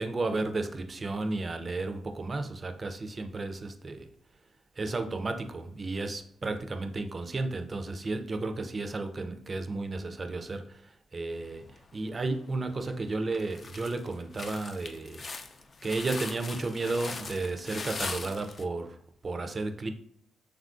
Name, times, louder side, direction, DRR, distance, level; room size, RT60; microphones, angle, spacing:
voice 1, 0.0-4.1 4.8-15.3 15.8-19.9, right 3 dB, 40° right, 7 dB, 0.4 m, -33 dB
sound 1, 11.8-12.3 12.8-12.9 13.3-18.6, left 4 dB, 45° left, 0.4 m, -40 dB
3.2 x 2.4 x 2.5 m, 0.66 s
supercardioid pair, 55°, 0 cm